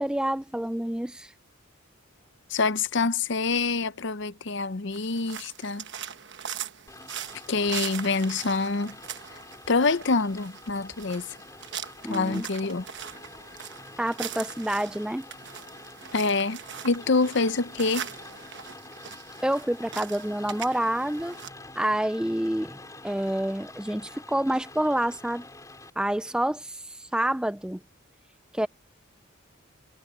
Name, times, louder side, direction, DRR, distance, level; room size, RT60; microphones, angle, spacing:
voice 1, 0.0-1.3 12.0-12.5 14.0-15.3 19.4-21.4 21.8-22.8 23.0-25.5 26.0-27.8 28.5-28.7, right 1 dB, 5° right, 0.4 m, -28 dB
voice 2, 2.5-5.8 7.5-9.0 9.7-11.3 12.1-12.8 16.1-16.6 16.8-18.1, left 3 dB, 60° left, 0.7 m, -26 dB
Woodland Walk, 4.9-21.5, right 9 dB, 55° right, 1.2 m, -41 dB
Rain, 6.9-25.9, left 2 dB, 15° left, 6.5 m, -47 dB
head